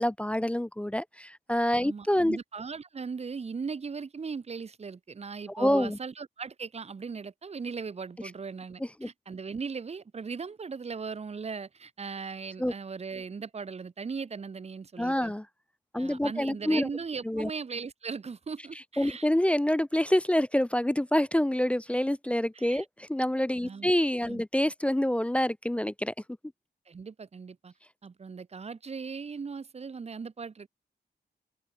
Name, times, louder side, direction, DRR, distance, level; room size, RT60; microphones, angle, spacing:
voice 1, 0.0-2.4 5.5-6.0 8.8-9.1 12.6-12.7 15.0-15.5 15.9-16.9 17.2-17.5 19.0-26.1, left 1 dB, 5° left, 0.4 m, -27 dB
voice 2, 1.8-15.3 16.0-19.3 22.5-22.9 23.6-23.9 24.3-24.4 26.9-27.7 28.0-30.7, right 5 dB, 40° right, 3.7 m, -38 dB
wide cardioid pair, 165°, 17 cm